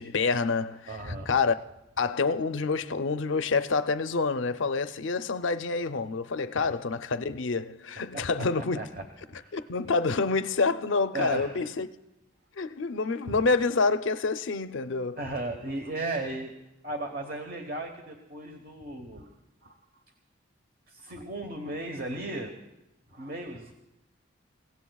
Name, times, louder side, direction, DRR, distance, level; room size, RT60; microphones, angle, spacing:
voice 1, 0.0-1.5 2.0-8.8 9.5-11.9 12.6-15.2, left 4 dB, 80° left, 0.6 m, -27 dB
voice 2, 0.9-1.3 6.5-6.7 8.1-9.1 9.3-9.7 11.1-11.7 13.3-13.4 15.2-16.5 16.8-19.3 19.6-19.8 20.9-22.5 23.1-23.7, right 2 dB, 50° right, 1.2 m, -36 dB
29.5 x 16.5 x 2.3 m
head